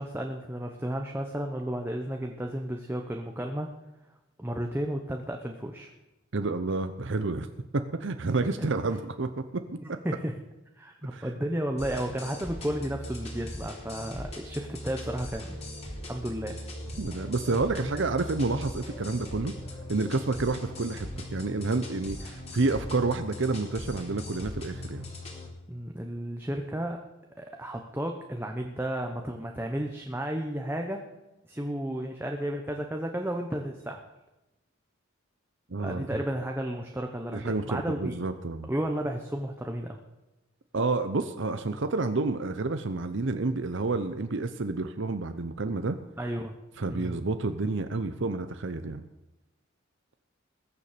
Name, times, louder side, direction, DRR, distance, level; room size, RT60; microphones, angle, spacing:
voice 1, 0.0-3.7 4.4-5.9 8.6-8.7 9.8-10.3 10.8-15.6 16.1-16.6 25.7-27.0 27.4-31.1 31.4-34.0 35.8-38.1 38.7-40.0 46.2-46.5 46.9-47.2, right 1 dB, 10° right, 2 dB, 1.0 m, -33 dB
voice 2, 6.3-7.5 7.7-9.6 9.9-10.0 11.1-11.3 17.0-19.5 19.9-25.0 35.7-36.1 37.3-38.7 40.7-46.0 46.8-49.0, right 3 dB, 60° right, 9 dB, 0.8 m, -29 dB
sound 1, 11.8-25.5, left 1 dB, 30° left, 3.5 m, -39 dB
20.5 x 7.2 x 6.8 m, 1.0 s
head